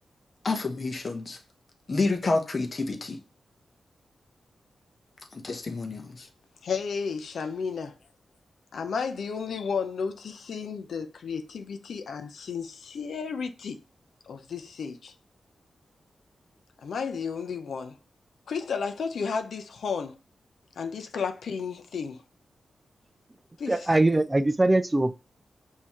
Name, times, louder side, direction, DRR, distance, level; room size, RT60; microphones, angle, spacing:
voice 1, 0.4-1.4 1.9-3.2 5.3-6.3, left 3 dB, 45° left, 0.8 m, -29 dB
voice 2, 6.6-7.9 8.7-13.8 14.2-15.1 16.8-18.0 18.5-20.2 20.8-22.2 23.6-23.9, left 5 dB, 80° left, 0.5 m, -33 dB
voice 3, 23.7-25.2, right 2 dB, 20° right, 0.4 m, -22 dB
5.5 x 2.8 x 3.0 m
cardioid pair, 70°, 0 cm